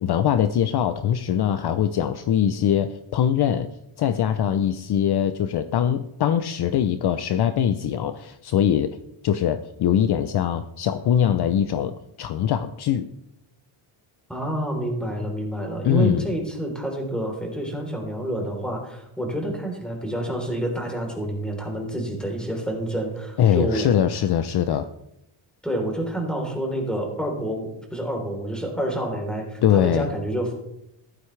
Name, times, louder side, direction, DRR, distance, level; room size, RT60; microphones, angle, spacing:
voice 1, 0.0-3.7 4.0-9.0 9.2-13.1 15.8-16.3 23.4-24.9 29.6-30.1, left 9 dB, 50° left, 11 dB, 0.7 m, -22 dB
voice 2, 14.3-23.9 25.6-30.5, right 1 dB, ahead, 0 dB, 3.7 m, -28 dB
14.5 x 12.0 x 3.3 m, 0.83 s
cardioid pair, 115°, 50 cm